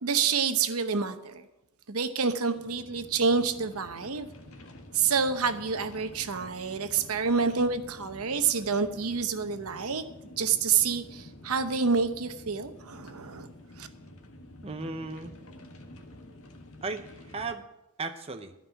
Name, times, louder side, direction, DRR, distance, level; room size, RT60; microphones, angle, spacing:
voice 1, 0.0-1.5 1.9-4.3 4.9-10.0 10.4-13.5 13.8-13.9, right 5 dB, 80° right, 9 dB, 0.9 m, -28 dB
sound 1, 2.5-17.6, left 1 dB, 70° left, 1.4 m, -49 dB
voice 2, 14.6-15.4 16.8-17.6 18.0-18.5, right 3 dB, 25° right, 7 dB, 0.6 m, -36 dB
12.5 x 5.5 x 9.2 m, 0.92 s
head